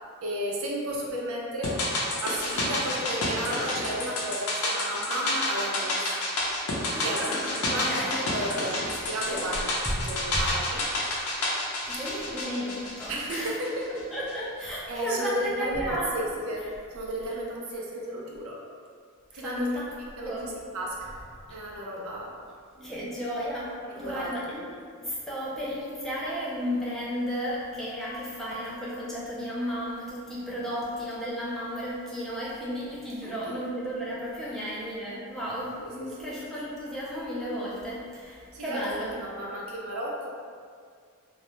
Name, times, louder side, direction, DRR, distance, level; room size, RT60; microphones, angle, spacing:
voice 1, 0.2-1.8 2.2-6.2 7.0-10.8 13.1-13.9 14.9-18.6 19.3-19.7 20.2-21.1 21.5-22.4 22.8-23.0 23.9-24.3 33.2-33.6 34.5-34.6 36.0-36.3 38.5-38.9 39.2-40.3, right 1 dB, 70° right, -3 dB, 0.5 m, -33 dB
sound 1, 1.6-14.0 14.3-14.4, left 1 dB, 85° left, 0.6 m, -30 dB
voice 2, 6.9-8.2 9.2-9.5 9.9-10.1 10.3-10.5 11.9-13.6 13.9-16.3 19.3-19.9 20.2-20.5 22.8-39.2, equal, ahead, -7 dB, 0.3 m, -33 dB
2.3 x 2.1 x 2.9 m, 2.1 s
head